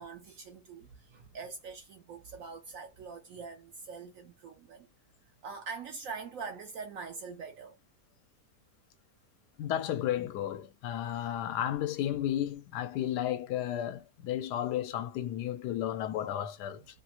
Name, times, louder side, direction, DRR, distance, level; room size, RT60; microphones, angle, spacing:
voice 1, 0.0-4.9 5.4-7.8 16.8-16.9, right 5 dB, 70° right, 0.8 m, -43 dB
voice 2, 9.6-16.8, left 11 dB, 80° left, 1.1 m, -33 dB
2.8 x 2.4 x 2.8 m
omnidirectional pair, 1.8 m